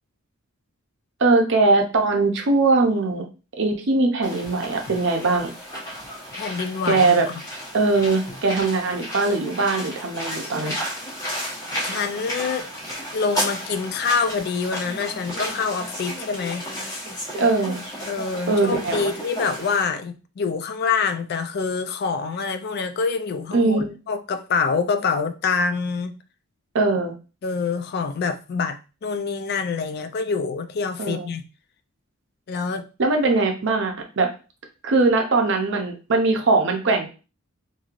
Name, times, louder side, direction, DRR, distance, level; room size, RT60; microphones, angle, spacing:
voice 1, 1.2-3.2 3.6-5.5 6.9-7.3 7.7-10.7 17.4-17.8 18.5-19.1 23.5-23.9 26.7-27.1 31.0-31.2 33.0-34.3 34.8-37.1, right 3 dB, 60° right, 0.6 m, -21 dB
sound 1, 4.2-19.8, equal, 15° left, 1.0 m, -33 dB
voice 2, 6.3-7.4 11.8-12.7 13.1-16.7 18.1-26.2 27.4-31.5 32.5-32.9, left 5 dB, 50° left, 0.3 m, -26 dB
3.0 x 2.6 x 2.4 m
head